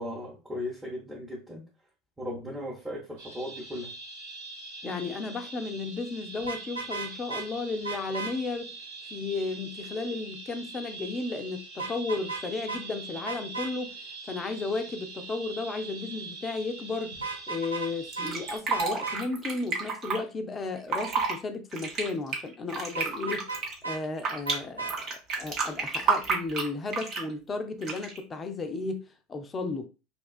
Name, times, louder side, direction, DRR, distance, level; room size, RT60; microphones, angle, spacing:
voice 1, 0.0-1.6 2.2-3.9, left 1 dB, 15° right, 0.8 m, -37 dB
sound 1, 3.2-18.6, right 3 dB, 70° right, 1.1 m, -43 dB
voice 2, 4.8-8.7 9.1-14.0 14.3-17.2 17.5-29.9, left 3 dB, 25° left, 0.4 m, -34 dB
Vehicle horn car horn honking, 6.4-7.5 7.8-8.3 11.8-12.4 12.7-12.8 13.3-13.7 17.1-17.9 18.2-18.3 18.7-19.2 23.0-24.0 24.5-25.0, right 4 dB, 90° right, 0.4 m, -35 dB
Fill (with liquid), 18.1-20.2 20.8-21.3 21.7-24.5 24.9-27.3 27.8-28.2, right 4 dB, 45° right, 0.8 m, -30 dB
2.4 x 2.2 x 2.4 m
figure-of-eight pair, 75°, 0 cm